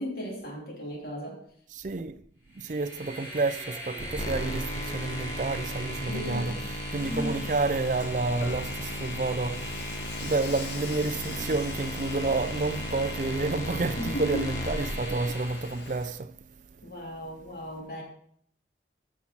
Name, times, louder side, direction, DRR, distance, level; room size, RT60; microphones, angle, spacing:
voice 1, 0.0-1.4 6.1-6.6 7.0-7.5 14.0-14.4 16.8-18.0, equal, 55° left, 3.2 m, -36 dB
voice 2, 1.7-2.2 2.5-6.6 6.9-16.9, right 3 dB, 45° right, 0.5 m, -30 dB
Train, 2.5-16.0, equal, 15° left, 4.8 m, -41 dB
sound 1, 4.0-15.7, equal, 35° left, 0.9 m, -36 dB
Dishes pots and pans / Frying (food), 7.0-16.2, left 3 dB, 75° left, 1.8 m, -43 dB
14.5 x 6.0 x 4.3 m
head